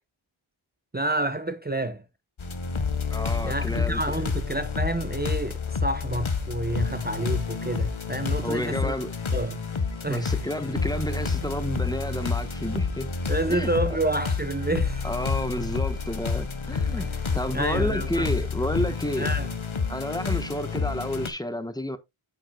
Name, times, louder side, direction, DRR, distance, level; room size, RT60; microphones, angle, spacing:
voice 1, 0.9-2.0 3.4-9.0 9.3-9.6 10.0-10.3 13.3-15.1 17.5-18.3 19.2-19.5, right 1 dB, 20° right, 0.7 m, -29 dB
sound 1, 2.4-21.3, left 5 dB, 70° left, 1.3 m, -29 dB
voice 2, 3.1-4.2 8.4-9.1 10.1-13.1 13.5-13.7 15.0-19.3 19.9-22.0, left 1 dB, 10° left, 1.1 m, -30 dB
9.2 x 7.4 x 2.2 m
wide cardioid pair, 55°, 50 cm